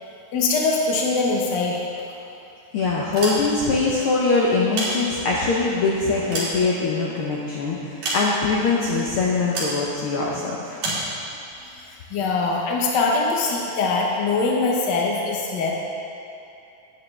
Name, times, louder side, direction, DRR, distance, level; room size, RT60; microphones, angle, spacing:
voice 1, 0.3-1.8 10.8-11.0 11.6-15.7, left 3 dB, 60° left, -2 dB, 1.1 m, -23 dB
voice 2, 2.7-10.8, left 3 dB, 80° left, -3 dB, 1.2 m, -22 dB
sound 1, 3.0-3.8 4.5-5.5 6.0-7.2 8.0-8.7 9.5-9.8 10.8-11.1, right 2 dB, 75° right, 3.8 m, -29 dB
11.5 x 9.4 x 3.3 m, 2.7 s
omnidirectional pair, 3.6 m